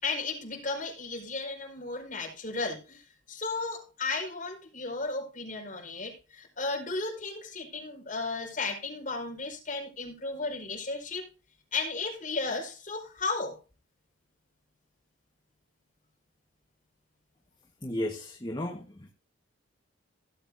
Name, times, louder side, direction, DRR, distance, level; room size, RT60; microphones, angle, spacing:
voice 1, 0.0-11.3 11.7-13.6, left 3 dB, 40° left, 5.1 m, -34 dB
voice 2, 17.8-19.1, left 1 dB, 20° left, 1.4 m, -34 dB
17.5 x 8.1 x 2.7 m
head